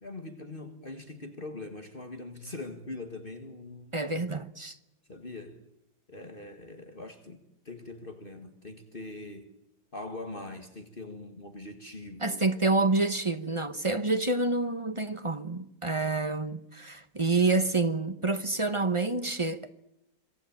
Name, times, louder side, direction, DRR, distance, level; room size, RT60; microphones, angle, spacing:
voice 1, 0.0-4.2 5.1-5.6 6.1-9.5 9.9-12.4 14.0-14.1, left 2 dB, 35° left, 2.0 m, -42 dB
voice 2, 3.9-4.8 12.2-19.7, right 3 dB, 25° right, 0.8 m, -28 dB
26.5 x 19.0 x 8.9 m
omnidirectional pair, 1.7 m